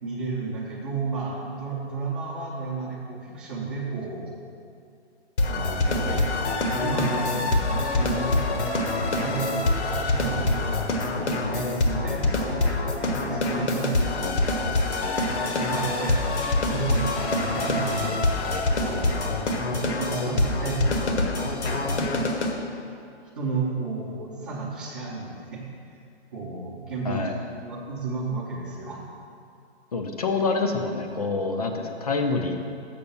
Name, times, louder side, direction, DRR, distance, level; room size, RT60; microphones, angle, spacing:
voice 1, 0.0-4.3 5.4-6.3 6.8-8.7 9.2-10.7 11.5-14.5 15.7-16.2 16.6-18.3 18.8-19.3 19.7-22.0 23.3-25.7 26.3-27.3 27.6-29.0, right 4 dB, 20° right, -8 dB, 0.8 m, -32 dB
sound 1, 5.4-22.5, left 2 dB, 80° left, 1.3 m, -25 dB
voice 2, 29.9-32.6, left 3 dB, 35° left, 5 dB, 0.6 m, -26 dB
6.9 x 6.4 x 7.0 m, 2.4 s
hypercardioid pair, 175°, 33 cm